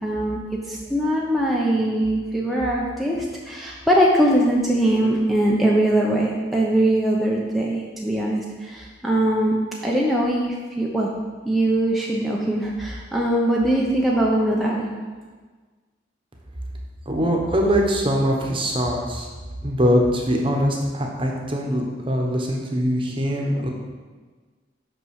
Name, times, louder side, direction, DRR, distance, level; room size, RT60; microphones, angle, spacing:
voice 1, 0.0-9.6 9.8-11.1 11.4-14.9, right 1 dB, ahead, -4 dB, 0.7 m, -21 dB
voice 2, 17.1-19.3 19.6-23.7, equal, 30° right, 0 dB, 1.1 m, -22 dB
6.0 x 5.5 x 6.4 m, 1.4 s
head